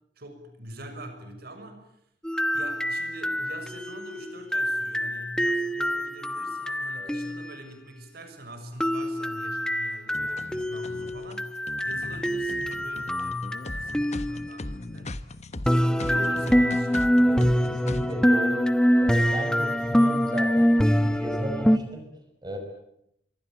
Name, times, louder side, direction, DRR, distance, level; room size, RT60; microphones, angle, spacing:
voice 1, 0.2-1.9 2.5-15.1 15.6-17.1, right 1 dB, 60° right, 7 dB, 6.5 m, -42 dB
sound 1, 2.2-7.5 8.8-14.6 15.6-21.8, equal, 5° left, 1.1 m, -25 dB
sound 2, 10.1-18.1, left 1 dB, 40° left, 1.2 m, -38 dB
voice 2, 17.2-18.7 19.0-20.7 21.0-22.6, right 1 dB, 25° right, 5 dB, 5.4 m, -35 dB
25.0 x 24.0 x 8.9 m, 0.76 s
head